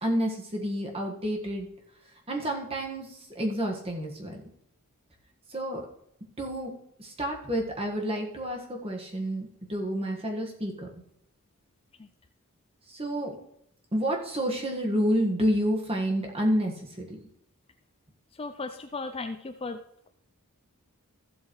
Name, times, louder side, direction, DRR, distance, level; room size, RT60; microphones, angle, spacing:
voice 1, 0.0-1.7 2.3-3.1 3.3-4.3 5.5-5.8 6.4-6.7 7.0-10.9 12.9-13.3 13.9-17.2, equal, 25° right, 0 dB, 1.6 m, -29 dB
voice 2, 18.4-19.8, left 3 dB, 25° left, 8 dB, 0.5 m, -35 dB
14.5 x 7.8 x 3.2 m, 0.76 s
head